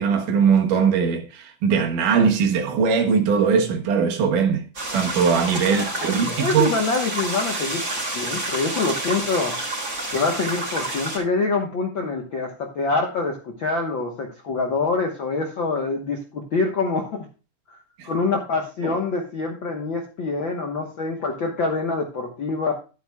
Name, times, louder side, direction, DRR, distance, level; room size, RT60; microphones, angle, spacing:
voice 1, 0.0-4.6 4.9-6.7 18.0-18.1 18.8-19.0, right 6 dB, 75° right, 2.9 m, -20 dB
sound 1, 4.7-11.2, right 2 dB, 25° right, 4.0 m, -29 dB
voice 2, 5.7-9.5 10.1-17.2 18.0-22.7, left 3 dB, 65° left, 1.2 m, -25 dB
12.5 x 9.7 x 2.3 m
omnidirectional pair, 3.8 m